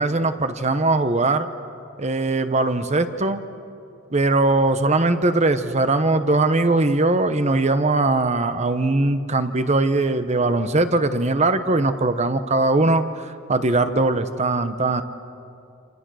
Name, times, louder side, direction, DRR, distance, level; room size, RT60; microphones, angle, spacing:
voice 1, 0.0-1.5 2.0-3.4 4.1-15.0, right 2 dB, 35° right, 10 dB, 1.0 m, -20 dB
28.5 x 28.0 x 6.4 m, 2.6 s
head